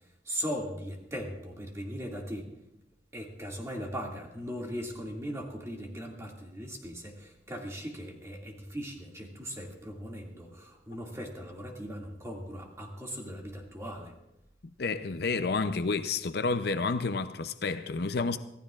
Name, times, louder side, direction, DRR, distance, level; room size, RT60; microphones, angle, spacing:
voice 1, 0.2-2.5 3.1-14.1, equal, 15° right, 2.2 m, -39 dB
voice 2, 14.8-18.4, left 4 dB, 60° left, 0.6 m, -30 dB
25.5 x 15.0 x 2.4 m
head